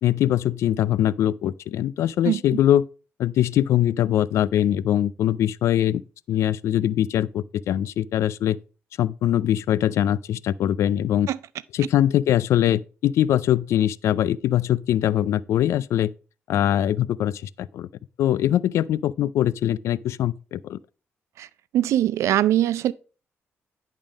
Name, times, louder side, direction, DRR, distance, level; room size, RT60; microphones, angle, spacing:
voice 1, 0.0-2.9 3.2-6.0 6.3-8.6 9.0-11.3 11.7-16.1 16.5-17.9 18.2-20.8, left 11 dB, 80° left, 0.3 m, -22 dB
voice 2, 2.2-2.6 11.3-11.4 21.4-21.5 21.7-22.9, right 12 dB, 85° right, 0.4 m, -22 dB
10.5 x 3.6 x 5.0 m
cardioid pair, 80°, 5 cm